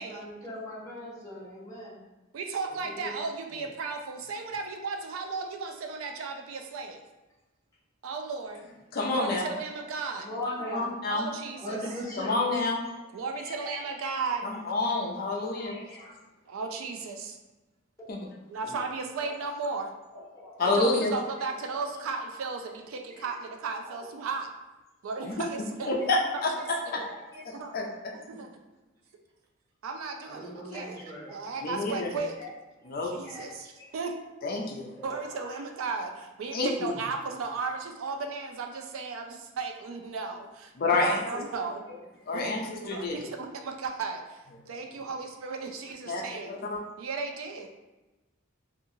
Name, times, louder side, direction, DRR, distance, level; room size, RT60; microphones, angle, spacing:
voice 1, 0.0-2.0 2.8-3.1 10.1-10.8 11.6-12.5 13.0-14.1 14.9-16.2 18.0-18.1 18.6-18.8 19.2-19.3 20.1-20.6 21.7-22.2 23.1-23.3 23.8-24.1 25.1-25.3 26.0-26.1 26.6-27.4 30.3-31.5 31.9-32.5 32.8-33.9 35.0-35.6 44.9-45.1, left 1 dB, 15° left, -7 dB, 0.8 m, -41 dB
voice 2, 2.3-7.0 8.0-8.7 9.1-10.3 11.1-11.8 13.1-14.5 16.5-17.4 18.5-19.9 20.6-24.5 25.0-25.9 27.0-27.1 27.5-27.7 28.3-28.5 29.8-31.0 31.3-32.3 33.0-34.2 35.0-41.8 42.3-42.5 42.8-44.4 44.7-46.6 47.0-47.7, right 4 dB, 80° right, 4 dB, 0.4 m, -35 dB
voice 3, 8.9-9.4 10.7-11.3 12.2-12.8 14.4-15.8 18.1-18.3 20.6-21.1 25.3-25.4 25.9-27.0 27.7-27.9 31.6-32.1 32.9-33.1 34.4-34.9 36.5-36.9 40.8-41.2 42.3-42.6 42.9-43.1 46.1-46.2 46.5-46.8, left 3 dB, 45° left, 0 dB, 0.4 m, -28 dB
2.8 x 2.3 x 2.6 m, 1.1 s
head